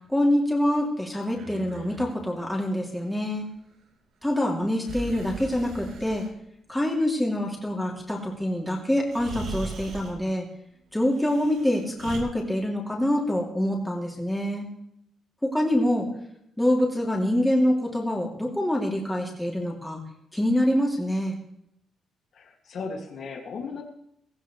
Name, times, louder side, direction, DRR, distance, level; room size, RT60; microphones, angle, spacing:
voice 1, 0.1-3.5 4.2-6.2 6.7-10.4 10.9-14.6 15.4-16.1 16.6-20.0 20.3-21.3, left 1 dB, 5° left, -2 dB, 2.8 m, -25 dB
Breathing, 1.2-2.1 4.8-6.3 8.5-8.6 9.1-10.2 11.1-12.2, right 4 dB, 85° right, 3.2 m, -39 dB
voice 2, 22.3-23.8, left 4 dB, 55° left, 2 dB, 2.2 m, -36 dB
17.0 x 16.5 x 3.2 m, 0.75 s
cardioid pair, 140°, 0 cm